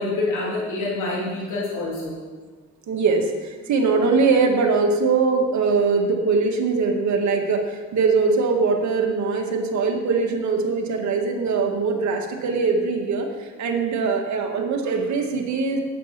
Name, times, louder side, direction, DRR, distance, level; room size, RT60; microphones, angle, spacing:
voice 1, 0.0-2.2, left 2 dB, 80° left, -4 dB, 2.9 m, -26 dB
voice 2, 2.9-15.8, right 4 dB, 70° right, 2 dB, 1.8 m, -22 dB
8.6 x 8.5 x 5.9 m, 1.4 s
cardioid pair, 90°, 30 cm